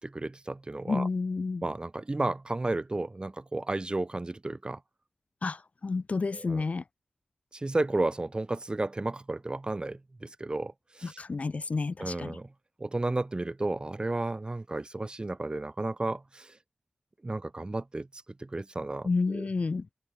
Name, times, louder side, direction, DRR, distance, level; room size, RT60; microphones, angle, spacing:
voice 1, 0.0-1.1 1.6-4.8 6.3-6.6 7.5-11.2 12.0-12.5 12.8-16.5 17.2-19.5, right 2 dB, 35° right, 5.1 m, -33 dB
voice 2, 0.9-1.7 5.4-6.8 11.0-12.4 19.0-19.9, left 4 dB, 65° left, 2.4 m, -30 dB
open air
cardioid pair, 50°, 3 cm